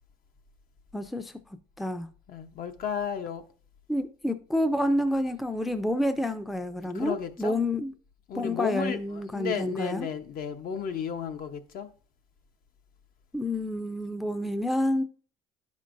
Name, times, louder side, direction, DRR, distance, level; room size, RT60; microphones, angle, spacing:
voice 1, 0.9-1.3 1.8-2.1 3.9-7.9 8.3-10.1 13.3-15.0, left 1 dB, ahead, 0.4 m, -28 dB
voice 2, 2.3-3.4 6.9-7.6 8.3-11.9, left 7 dB, 60° left, 0.8 m, -33 dB
11.5 x 5.3 x 2.5 m
cardioid pair, 110°, 17 cm